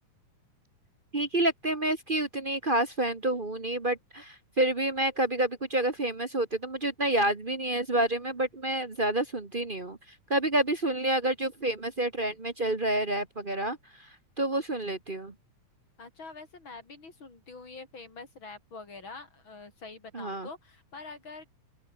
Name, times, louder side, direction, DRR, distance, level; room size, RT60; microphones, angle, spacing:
voice 1, 1.1-10.0 10.3-13.8 14.4-15.3 20.1-20.5, right 1 dB, 40° right, 0.7 m, -28 dB
voice 2, 16.0-21.5, left 3 dB, 35° left, 5.4 m, -45 dB
open air
omnidirectional pair, 3.7 m